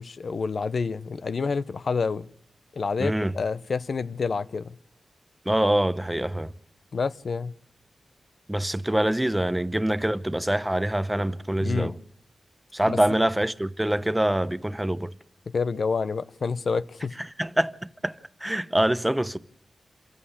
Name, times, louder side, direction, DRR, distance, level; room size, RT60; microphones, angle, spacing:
voice 1, 0.0-2.3 2.8-4.7 6.9-7.6 11.6-12.0 12.8-13.0 15.5-17.1, left 5 dB, 65° left, 0.9 m, -28 dB
voice 2, 3.0-3.3 5.5-6.5 8.5-11.9 12.7-15.1 17.4-17.8 18.0-18.1 18.4-19.4, right 1 dB, 10° right, 0.9 m, -24 dB
27.0 x 14.5 x 8.1 m
wide cardioid pair, 95°, 0 cm